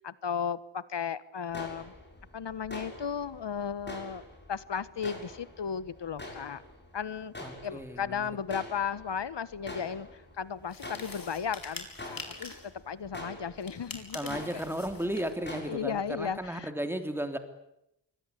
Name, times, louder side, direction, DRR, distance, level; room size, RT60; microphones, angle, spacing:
voice 1, 0.0-1.9 2.3-4.2 4.5-6.6 6.9-7.3 7.6-12.5 12.9-14.6 15.5-16.7, left 7 dB, 65° left, 16 dB, 1.4 m, -35 dB
sound 1, 1.5-16.5, left 1 dB, 20° left, 7.1 m, -47 dB
voice 2, 7.4-8.3 14.1-17.4, right 1 dB, 5° right, 7 dB, 3.3 m, -34 dB
sound 2, 10.7-12.7 13.6-15.4, left 3 dB, 45° left, 5.2 m, -45 dB
26.5 x 23.5 x 8.5 m, 0.82 s
wide cardioid pair, 140°, 47 cm